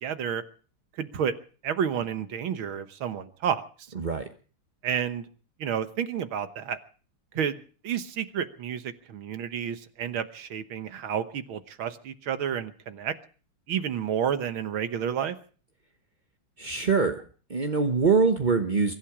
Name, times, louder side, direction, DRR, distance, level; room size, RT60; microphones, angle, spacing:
voice 1, 0.0-0.4 1.0-1.3 1.6-3.6 4.8-5.3 5.6-6.8 7.4-7.6 7.8-13.1 13.7-15.4, right 8 dB, 70° right, 11 dB, 1.9 m, -30 dB
voice 2, 4.0-4.3 16.6-17.2 17.5-18.9, right 4 dB, 35° right, 5 dB, 0.8 m, -23 dB
23.5 x 12.0 x 4.9 m, 0.40 s
omnidirectional pair, 2.4 m